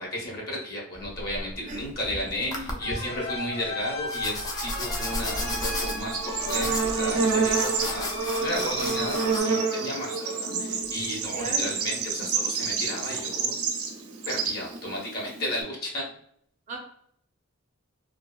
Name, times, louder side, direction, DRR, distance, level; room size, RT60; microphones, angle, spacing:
voice 1, 0.0-13.5 14.2-16.0, left 1 dB, 45° left, -2 dB, 0.8 m, -34 dB
sound 1, 0.9-2.0 2.5-3.0 4.1-9.4, left 1 dB, 20° left, 0.3 m, -33 dB
voice 2, 2.1-2.8 11.3-11.7 16.7-16.8, right 2 dB, 35° right, 0 dB, 0.5 m, -37 dB
sound 2, 2.8-10.2, left 2 dB, 80° left, 1.0 m, -37 dB
Bird / Insect, 5.0-15.6, right 5 dB, 85° right, 0.5 m, -28 dB
2.6 x 2.4 x 2.2 m, 0.67 s
head